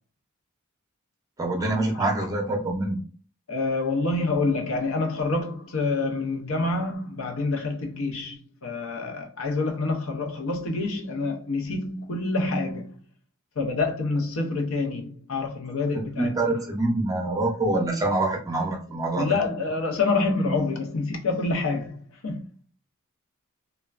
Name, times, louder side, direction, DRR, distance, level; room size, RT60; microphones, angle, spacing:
voice 1, 1.4-3.0 16.2-19.3, right 2 dB, 15° right, 0.6 m, -25 dB
voice 2, 3.5-13.0 13.6-16.7 19.2-22.5, left 3 dB, 70° left, 0.6 m, -27 dB
3.3 x 2.2 x 2.4 m
head